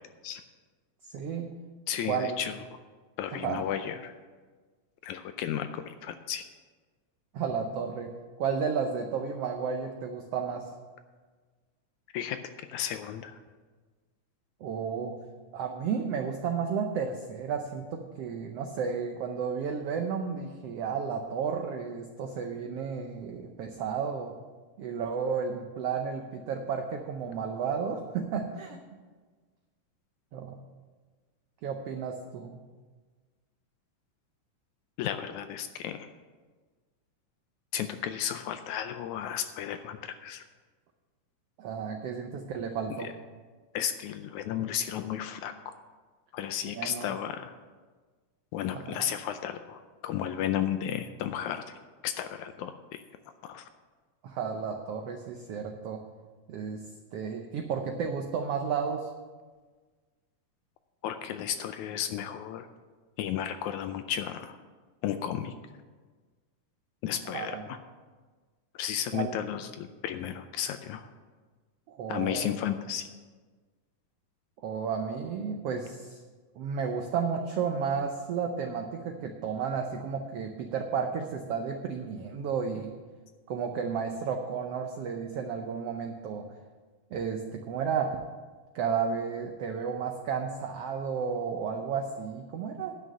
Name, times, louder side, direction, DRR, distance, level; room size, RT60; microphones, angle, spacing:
voice 1, 1.0-1.5 2.1-2.4 3.3-3.6 7.3-8.1 8.4-10.7 14.6-15.1 15.5-24.3 24.8-28.8 30.3-30.6 31.6-32.6 41.6-43.1 46.8-47.1 48.7-48.9 54.2-56.0 56.5-56.8 57.1-59.1 67.3-67.6 69.1-69.3 71.9-72.5 74.6-76.2 76.5-82.9 83.5-86.4 87.1-88.2 88.7-92.9, right 6 dB, 90° right, 4 dB, 1.3 m, -32 dB
voice 2, 1.9-2.6 3.2-4.2 5.0-6.5 12.1-12.4 12.7-13.4 35.0-36.1 37.7-40.4 43.7-45.7 46.3-47.5 48.5-51.6 52.0-53.0 53.4-53.7 61.0-62.7 63.2-64.6 65.0-65.5 67.0-67.8 68.8-71.1 72.1-73.1, left 10 dB, 80° left, 9 dB, 1.8 m, -33 dB
11.0 x 6.3 x 8.4 m, 1.4 s
omnidirectional pair, 3.8 m